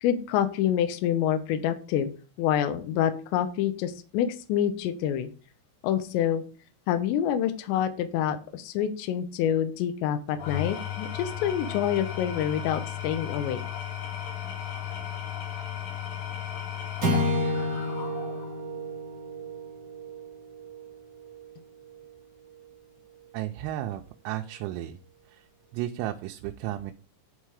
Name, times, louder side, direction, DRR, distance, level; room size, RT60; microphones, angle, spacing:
voice 1, 0.0-2.1 2.4-5.3 5.8-6.4 6.9-13.6, left 10 dB, 75° left, 8 dB, 2.8 m, -27 dB
Engine / Tools, 10.3-18.6, left 10 dB, 50° left, 2.9 m, -35 dB
sound 1, 17.0-21.5, left 1 dB, 50° right, 1.1 m, -31 dB
voice 2, 23.3-25.0 25.3-25.5 25.7-26.9, right 13 dB, 85° right, 4 dB, 3.3 m, -33 dB
11.0 x 3.8 x 4.7 m, 0.38 s
omnidirectional pair, 6.0 m